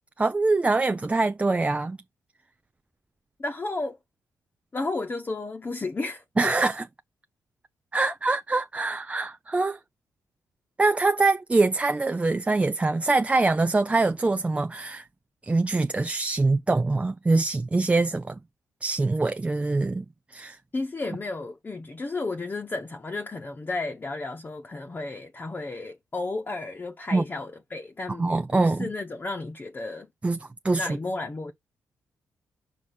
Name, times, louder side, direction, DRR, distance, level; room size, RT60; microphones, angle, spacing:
voice 1, 0.2-2.0 6.4-6.9 7.9-9.8 10.8-15.1 15.4-18.4 18.8-20.1 20.3-20.6 27.1-27.2 28.2-28.9 30.2-31.0, right 3 dB, 20° right, 0.4 m, -24 dB
voice 2, 3.4-4.0 4.7-6.5 20.7-30.1 30.7-31.5, left 3 dB, 30° left, 1.0 m, -33 dB
5.1 x 4.9 x 4.3 m
cardioid pair, 75°, 6 cm